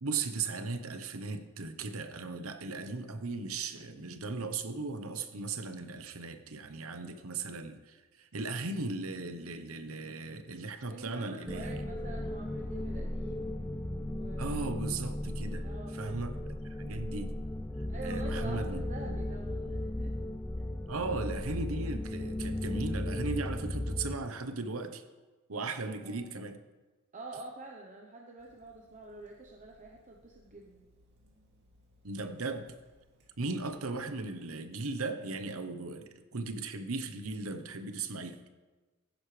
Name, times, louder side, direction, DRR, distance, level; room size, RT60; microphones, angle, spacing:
voice 1, 0.0-11.8 14.4-15.6 15.9-17.3 18.0-19.2 20.9-25.0 25.5-26.6 32.0-32.7 33.4-38.4, right 3 dB, 75° right, 8 dB, 1.0 m, -37 dB
voice 2, 10.9-13.6 14.1-14.6 15.6-16.2 17.9-20.3 26.0-26.2 27.1-30.8, right 2 dB, 35° right, 0 dB, 0.9 m, -47 dB
sound 1, 11.5-24.2, left 1 dB, 10° left, 0.4 m, -36 dB
Water tap faucet / Sink (filling or washing), 28.4-33.9, equal, 55° right, 2.4 m, -66 dB
15.5 x 10.5 x 3.3 m, 1.3 s
head